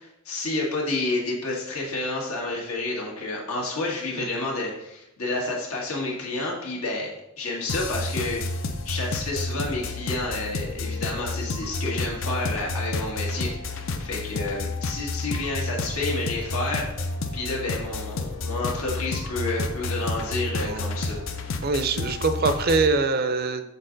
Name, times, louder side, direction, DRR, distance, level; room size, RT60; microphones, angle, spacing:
voice 1, 0.0-16.9 17.3-21.2, left 2 dB, 85° left, -2 dB, 1.8 m, -30 dB
sound 1, 7.7-22.9, left 3 dB, 60° left, 0.5 m, -30 dB
voice 2, 21.6-23.6, right 3 dB, 45° right, 9 dB, 0.5 m, -23 dB
6.6 x 4.2 x 3.9 m, 0.86 s
head